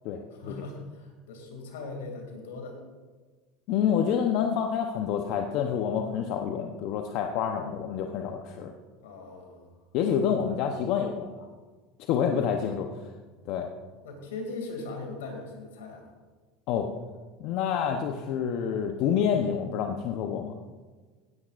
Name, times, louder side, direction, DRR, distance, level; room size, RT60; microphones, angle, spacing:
voice 1, 0.3-2.8 9.0-9.7 12.2-12.5 14.0-16.1, left 3 dB, 90° left, 3 dB, 2.5 m, -40 dB
voice 2, 3.7-8.7 9.9-11.5 12.1-12.9 13.5-13.7 16.7-16.9 17.4-20.5, left 8 dB, 65° left, 4 dB, 0.8 m, -28 dB
16.0 x 10.0 x 2.5 m, 1.4 s
supercardioid pair, 95°, 0 cm